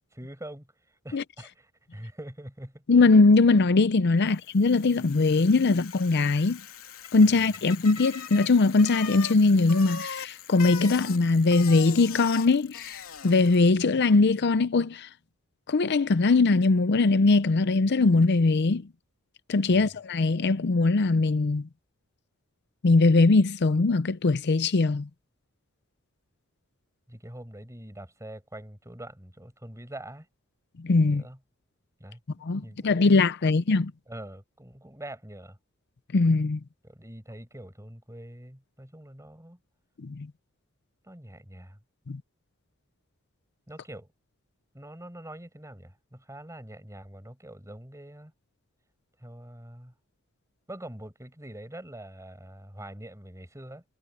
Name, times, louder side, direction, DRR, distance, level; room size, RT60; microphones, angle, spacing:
voice 1, 0.1-2.8 4.2-4.4 19.7-19.9 27.1-30.3 31.1-31.4 32.0-33.2 33.5-35.6 36.8-39.6 41.0-41.8 43.7-44.1 44.7-48.3 49.2-49.9 50.7-53.8, right 1 dB, 15° right, 7.2 m, -44 dB
voice 2, 2.9-6.6 7.1-15.1 15.7-18.9 19.5-21.7 22.8-25.1 30.8-31.2 32.4-33.9 36.1-36.6 40.0-40.3 42.1-42.2, left 3 dB, 55° left, 0.6 m, -21 dB
Bicycle, 4.4-13.8, left 7 dB, 80° left, 3.4 m, -41 dB
head